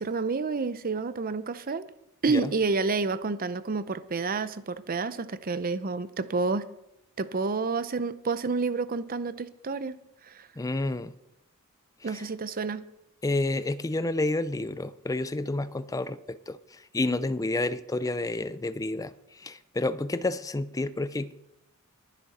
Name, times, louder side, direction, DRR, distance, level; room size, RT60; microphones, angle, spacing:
voice 1, 0.0-1.9 2.2-6.6 7.2-10.0 10.3-10.5 12.0-12.8, right 4 dB, 40° right, 0.6 m, -29 dB
voice 2, 10.6-11.1 12.0-12.3 13.2-21.3, left 2 dB, 15° left, 0.4 m, -30 dB
22.0 x 7.5 x 4.2 m
head